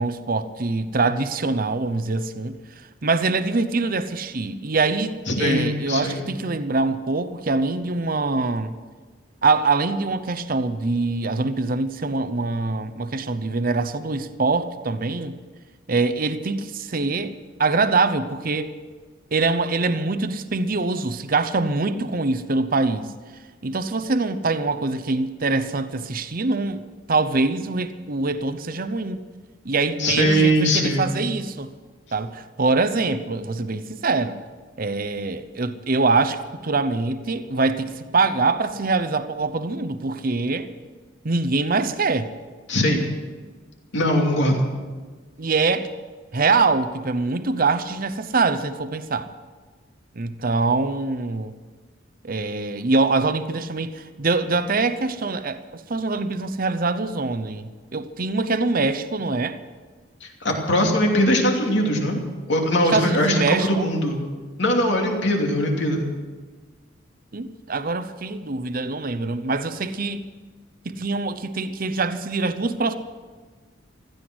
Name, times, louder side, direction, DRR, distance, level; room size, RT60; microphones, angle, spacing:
voice 1, 0.0-2.6 3.0-8.7 9.4-15.4 15.9-17.3 17.6-18.7 19.3-23.1 23.6-29.2 29.6-31.7 32.1-34.4 34.8-40.7 41.2-42.3 45.4-45.9 46.3-49.3 50.2-51.5 52.2-59.6 62.9-63.9 67.3-70.3 70.8-73.0, right 3 dB, 45° right, 0.8 m, -24 dB
voice 2, 5.3-6.2 30.0-31.1 42.7-43.1 43.9-44.6 60.2-62.2 62.5-64.2 64.6-66.0, equal, 60° left, 2.8 m, -21 dB
16.0 x 13.5 x 6.2 m
head